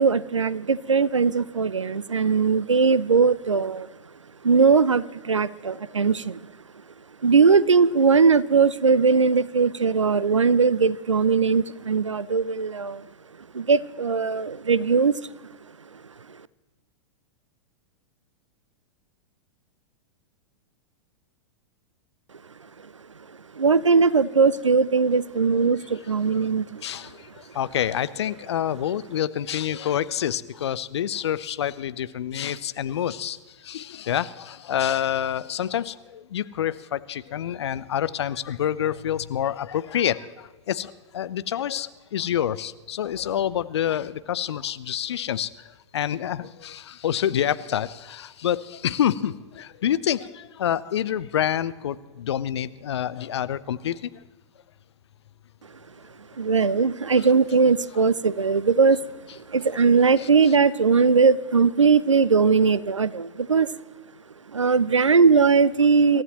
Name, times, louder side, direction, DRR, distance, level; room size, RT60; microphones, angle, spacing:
voice 1, 0.0-3.9 4.4-6.5 7.2-13.1 13.5-15.3 23.5-26.8 56.4-59.1 59.4-63.7 64.5-66.2, right 5 dB, 80° right, 19 dB, 0.6 m, -20 dB
voice 2, 26.8-54.1 60.2-60.3, left 10 dB, 60° left, 16 dB, 0.7 m, -27 dB
27.0 x 14.5 x 3.0 m, 1.3 s
figure-of-eight pair, 100°, 16 cm